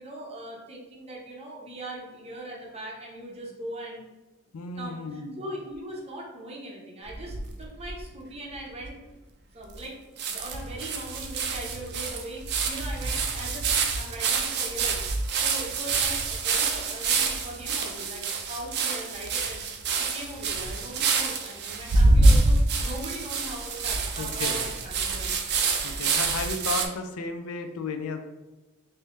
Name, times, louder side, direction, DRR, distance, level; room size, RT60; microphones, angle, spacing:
voice 1, 0.0-4.0 4.8-9.0 9.5-10.0 10.3-19.6 19.9-25.9, right 1 dB, 30° right, -2 dB, 0.8 m, -40 dB
voice 2, 4.5-5.4 24.2-24.6 25.8-28.2, left 3 dB, 80° left, 7 dB, 0.4 m, -33 dB
sound 1, 7.1-8.0 8.5-8.6 8.8-8.9 9.8-9.9 10.2-26.9, right 3 dB, 50° right, 0.5 m, -26 dB
3.6 x 2.8 x 3.0 m, 1.1 s
head